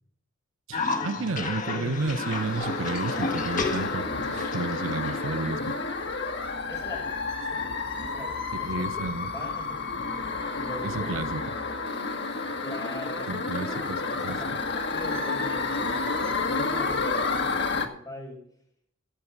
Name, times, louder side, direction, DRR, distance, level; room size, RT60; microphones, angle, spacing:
Cough, 0.7-5.8, left 3 dB, 40° left, 1.6 m, -33 dB
voice 1, 0.7-4.0 4.3-5.7 8.5-9.3 10.8-11.4 13.3-14.6, right 3 dB, 75° right, 0.8 m, -32 dB
sound 1, 2.0-17.9, left 3 dB, 55° left, 1.6 m, -30 dB
voice 2, 6.7-7.6 8.0-10.2 10.5-11.5 12.6-18.4, equal, 20° left, 5.6 m, -42 dB
sound 2, 10.8-14.5, left 5 dB, 75° left, 3.6 m, -45 dB
15.0 x 8.2 x 5.9 m
head